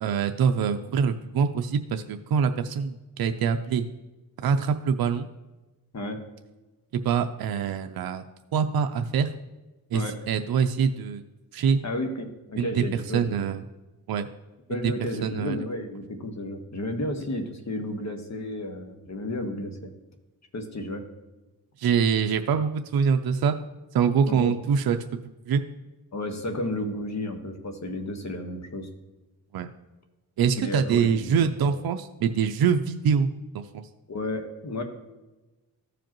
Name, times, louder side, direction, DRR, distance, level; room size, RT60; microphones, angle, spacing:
voice 1, 0.0-3.8 4.4-5.3 6.9-8.2 8.5-9.3 9.9-11.2 11.5-11.8 12.6-12.8 13.1-13.6 14.1-14.3 14.7-14.9 15.2-15.6 21.8-23.6 23.9-25.0 25.5-25.6 29.5-29.7 30.4-33.8, right 6 dB, 75° right, 7 dB, 0.6 m, -24 dB
voice 2, 11.8-13.6 14.7-19.9 20.5-21.0 24.3-24.5 26.1-28.9 30.6-31.8 34.1-34.8, left 1 dB, 50° left, 5 dB, 1.4 m, -32 dB
14.5 x 5.0 x 3.0 m, 1.1 s
cardioid pair, 70°, 36 cm